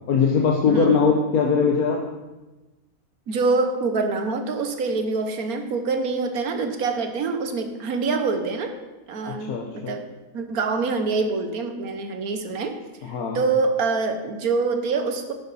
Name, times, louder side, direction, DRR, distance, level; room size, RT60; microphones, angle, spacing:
voice 1, 0.1-2.0 9.3-9.9 13.0-13.4, left 5 dB, 75° left, -1 dB, 1.5 m, -21 dB
voice 2, 0.7-1.1 3.3-8.7 9.1-10.1 10.3-12.8 13.0-15.3, right 4 dB, 75° right, 6 dB, 1.5 m, -25 dB
11.0 x 9.5 x 4.1 m, 1.1 s
omnidirectional pair, 1.6 m